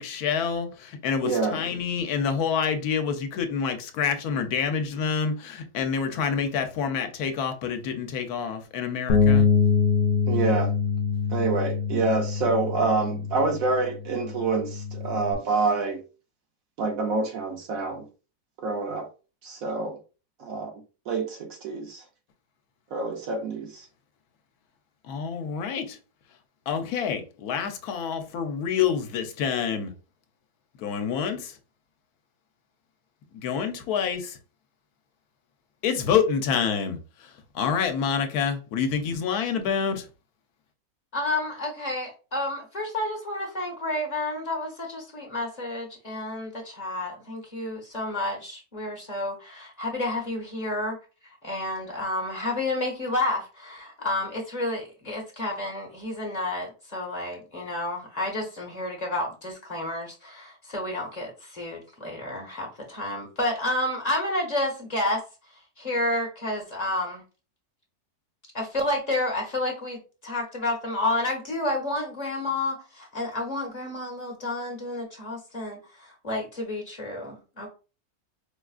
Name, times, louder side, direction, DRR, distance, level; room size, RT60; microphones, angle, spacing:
voice 1, 0.0-9.5 25.1-26.0 26.7-29.9 30.8-31.5 33.3-34.4 35.8-37.0 37.5-40.0, left 7 dB, 90° left, 1.1 m, -27 dB
voice 2, 1.2-1.6 10.3-10.7 11.3-16.0 16.8-18.1 18.6-19.1 19.4-20.0 20.4-20.7 21.1-22.0 22.9-23.9, right 3 dB, 70° right, 1.1 m, -27 dB
Bass guitar, 9.1-15.3, left 5 dB, 70° left, 0.6 m, -25 dB
voice 3, 41.1-51.0 51.4-65.2 65.8-67.2 68.5-77.7, left 1 dB, 30° left, 1.0 m, -30 dB
4.7 x 2.4 x 2.3 m
omnidirectional pair, 1.6 m